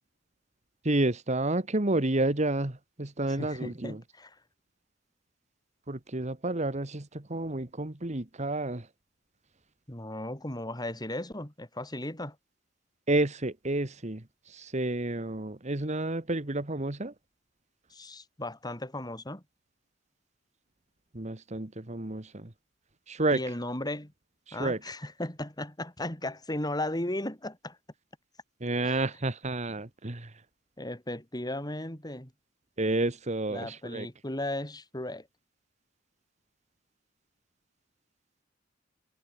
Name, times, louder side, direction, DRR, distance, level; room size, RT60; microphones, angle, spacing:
voice 1, 0.8-4.0 5.9-8.9 13.1-17.1 21.1-22.5 23.1-23.4 24.5-24.8 28.6-30.4 32.8-34.1, right 2 dB, 35° right, 1.7 m, -30 dB
voice 2, 3.4-4.4 9.9-12.4 17.9-19.4 23.3-24.1 24.5-27.8 28.8-29.0 30.8-32.3 33.5-35.3, left 1 dB, 20° left, 5.3 m, -36 dB
head